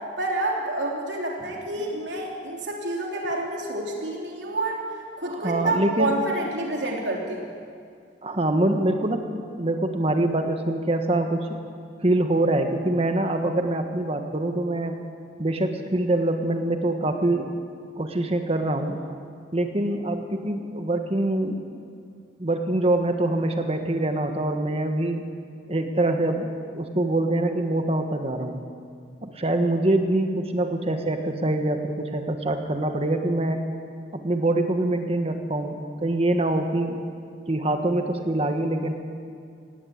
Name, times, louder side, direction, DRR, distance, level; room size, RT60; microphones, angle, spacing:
voice 1, 0.2-4.8 5.2-7.5, right 2 dB, 80° right, -1 dB, 3.4 m, -28 dB
voice 2, 5.2-6.1 8.2-11.5 12.0-15.0 15.4-17.5 18.0-19.0 19.5-21.6 22.4-25.2 25.7-26.5 26.7-28.6 29.2-33.6 34.1-37.0 37.5-38.9, right 1 dB, 35° right, 5 dB, 1.4 m, -24 dB
18.0 x 17.5 x 8.6 m, 2.3 s
head